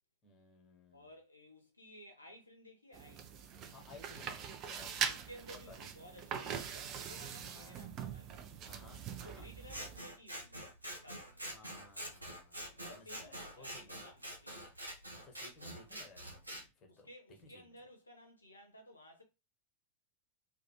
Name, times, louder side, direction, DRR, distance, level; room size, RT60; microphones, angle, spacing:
voice 1, 0.2-1.1 3.7-5.2 5.5-5.9 7.4-7.8 8.6-9.5 11.4-14.1 15.2-17.1 17.4-17.7, left 3 dB, 25° left, 1.0 m, -58 dB
voice 2, 0.9-3.3 4.9-8.7 9.2-10.7 11.0-11.5 12.8-14.7 16.9-19.2, equal, 80° left, 0.5 m, -56 dB
sound 1, 2.9-10.0, right 8 dB, 35° right, 0.4 m, -42 dB
Scissors, 9.7-16.6, equal, 85° right, 0.6 m, -46 dB
2.4 x 2.2 x 2.9 m
figure-of-eight pair, 90°, 0 cm